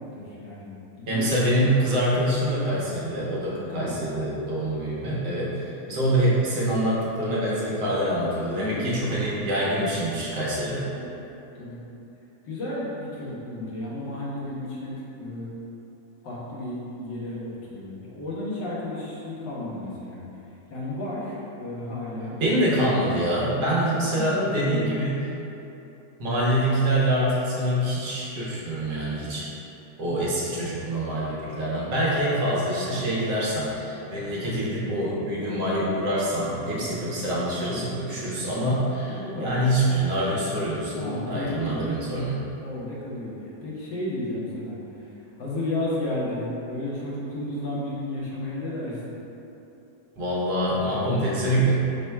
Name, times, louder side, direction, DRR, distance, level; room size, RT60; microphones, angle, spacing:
voice 1, 0.0-1.5 3.7-4.0 8.6-9.0 10.7-11.1 11.5-11.8 12.5-15.5 16.2-20.2 20.7-22.4 23.5-23.7 24.1-24.9 36.6-36.9 38.1-38.4 39.1-39.6 40.9-42.1 42.6-49.2, left 1 dB, 80° left, -6 dB, 1.6 m, -33 dB
voice 2, 1.1-10.9 22.4-25.2 26.2-29.5 30.0-42.4 50.2-51.7, right 1 dB, 75° right, -6 dB, 1.5 m, -25 dB
4.2 x 2.2 x 4.4 m, 3.0 s
omnidirectional pair, 1.9 m